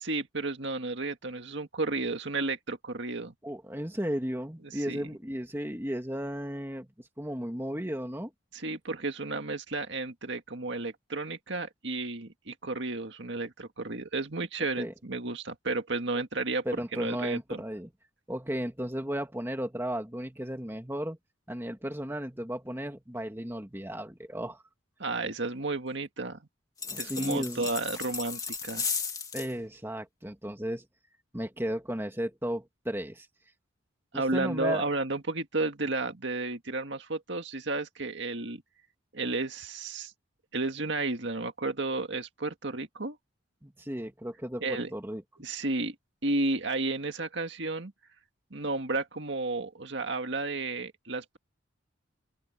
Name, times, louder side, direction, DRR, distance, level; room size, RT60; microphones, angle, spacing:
voice 1, 0.0-3.3 4.6-5.1 8.5-16.6 16.9-17.6 25.0-26.4 27.0-28.9 34.1-38.6 39.1-40.1 40.5-43.2 44.6-44.9 45.4-45.9 46.2-47.9 48.5-51.4, right 3 dB, 60° right, 2.0 m, -32 dB
voice 2, 3.4-8.3 14.8-14.9 16.7-17.9 18.3-21.2 21.5-24.6 27.0-27.7 29.3-30.9 31.3-33.3 34.1-34.9 43.6-45.2, equal, 10° right, 2.0 m, -34 dB
sound 1, 26.8-29.5, left 5 dB, 15° left, 1.9 m, -35 dB
open air
head